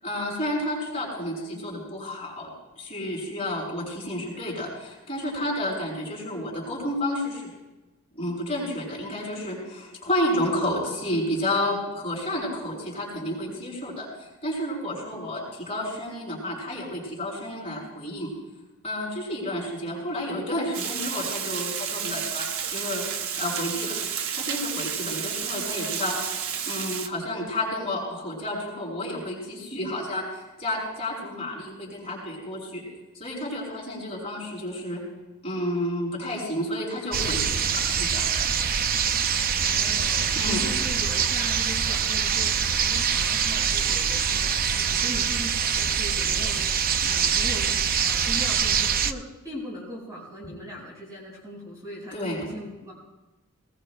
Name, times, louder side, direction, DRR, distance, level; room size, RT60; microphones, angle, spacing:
voice 1, 0.0-2.5 2.8-7.5 8.1-18.3 18.8-23.0 23.3-24.0 24.3-26.1 26.7-32.8 33.1-35.0 35.4-38.4 40.3-40.6 52.1-52.4, left 1 dB, 30° left, -5 dB, 6.2 m, -31 dB
Water, 20.7-27.1, right 8 dB, 65° right, 0.9 m, -31 dB
sound 1, 37.1-49.1, right 7 dB, 40° right, 0.5 m, -24 dB
voice 2, 39.6-52.9, equal, 15° right, -5 dB, 5.0 m, -39 dB
20.5 x 20.0 x 2.3 m, 1.0 s
head